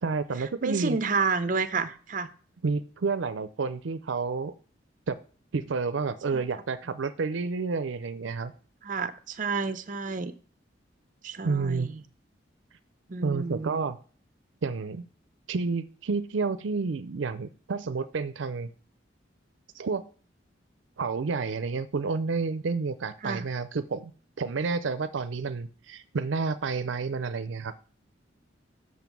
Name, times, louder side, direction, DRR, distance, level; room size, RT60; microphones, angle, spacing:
voice 1, 0.0-1.0 2.6-4.5 5.1-5.2 5.5-8.5 11.4-11.9 13.2-14.0 14.6-15.0 15.5-18.7 19.7-20.1 21.0-24.1 24.4-27.7, right 4 dB, 80° right, 12 dB, 0.5 m, -30 dB
voice 2, 0.6-2.3 6.3-6.4 8.8-10.3 11.2-12.0 13.1-13.9 23.2-23.4, right 4 dB, 45° right, 11 dB, 0.7 m, -30 dB
7.2 x 6.3 x 6.0 m, 0.41 s
head